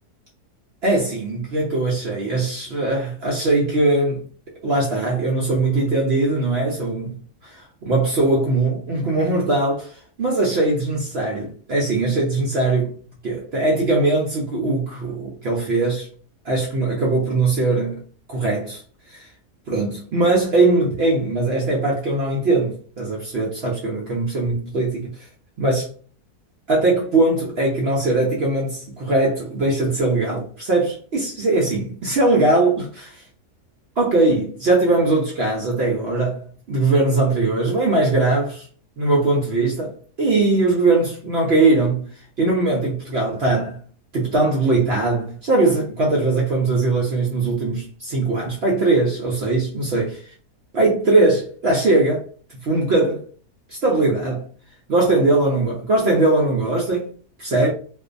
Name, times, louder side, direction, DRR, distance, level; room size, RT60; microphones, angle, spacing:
voice 1, 0.8-4.2 4.6-12.9 13.2-16.1 16.4-18.0 18.3-19.3 19.7-25.3 25.6-25.9 26.7-33.2 34.0-38.6 39.0-42.1 42.4-43.8 44.1-50.2 50.7-52.2 52.6-53.2 53.7-54.5 54.9-57.1 57.4-57.7, right 2 dB, 70° right, 0.6 m, -20 dB
2.5 x 2.2 x 2.5 m
omnidirectional pair, 1.7 m